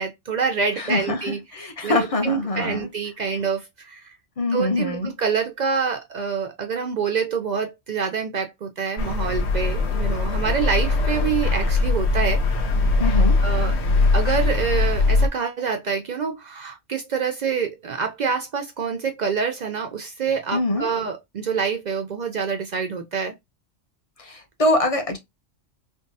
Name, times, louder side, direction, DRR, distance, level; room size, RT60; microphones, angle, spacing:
voice 1, 0.0-4.1 4.5-12.4 13.4-13.8 14.1-23.3, right 6 dB, 70° right, 0.4 m, -26 dB
voice 2, 0.8-2.9 4.4-5.1 13.0-13.4 20.5-20.9 24.2-25.2, left 2 dB, 35° left, 0.6 m, -24 dB
sound 1, 9.0-15.3, left 3 dB, 65° left, 1.0 m, -21 dB
3.5 x 2.2 x 2.6 m
omnidirectional pair, 1.3 m